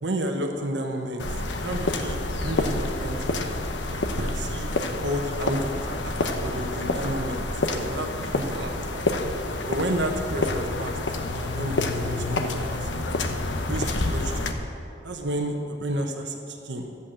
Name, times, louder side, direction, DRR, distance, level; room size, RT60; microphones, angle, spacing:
voice 1, 0.0-3.4 4.2-6.1 6.4-9.1 9.7-11.0 11.3-13.0 13.7-14.6 15.0-16.9, right 1 dB, 75° right, 3 dB, 1.1 m, -31 dB
sound 1, 1.2-14.5, left 2 dB, 85° left, 1.0 m, -28 dB
sound 2, 2.0-10.9, equal, 10° left, 0.7 m, -41 dB
sound 3, 10.5-13.5, left 5 dB, 70° left, 0.5 m, -38 dB
13.5 x 8.3 x 7.6 m, 2.8 s
head